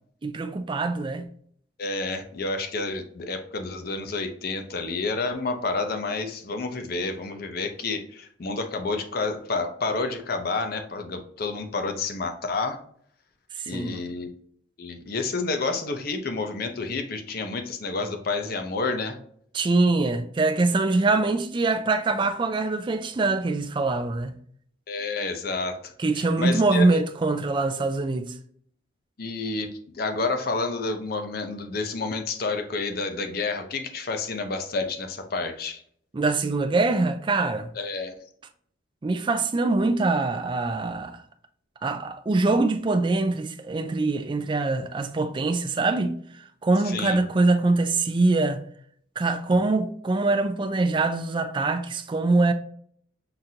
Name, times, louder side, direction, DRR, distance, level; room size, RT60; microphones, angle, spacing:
voice 1, 0.2-1.3 13.6-14.0 19.5-24.3 26.0-28.3 36.1-37.7 39.0-41.2 41.8-48.6 49.2-52.5, right 3 dB, 25° right, 0.3 m, -24 dB
voice 2, 1.8-12.8 13.7-14.3 14.8-19.2 24.9-26.9 29.2-29.7 30.0-35.8 37.7-38.1 46.8-47.2, left 3 dB, 50° left, 0.6 m, -29 dB
5.7 x 2.5 x 2.7 m
head